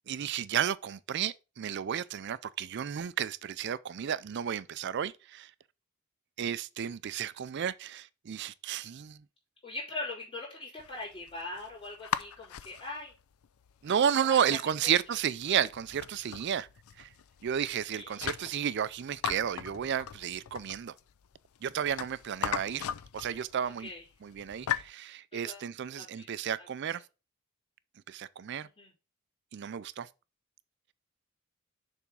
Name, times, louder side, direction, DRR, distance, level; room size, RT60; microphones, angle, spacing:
voice 1, 0.1-5.5 6.4-9.2 13.8-16.7 17.0-17.1 17.4-20.9 21.6-22.9 23.1-23.9 24.2-27.0 28.1-28.7 29.5-30.1, right 8 dB, 55° right, 0.4 m, -32 dB
voice 2, 9.6-13.1 14.2-14.4 14.8-15.0 17.9-18.2 23.8-24.0 25.3-25.6 26.0-26.2 28.8-28.9, left 2 dB, 25° left, 3.5 m, -41 dB
sound 1, 10.8-24.9, left 9 dB, 85° left, 0.4 m, -40 dB
6.9 x 3.5 x 6.0 m
head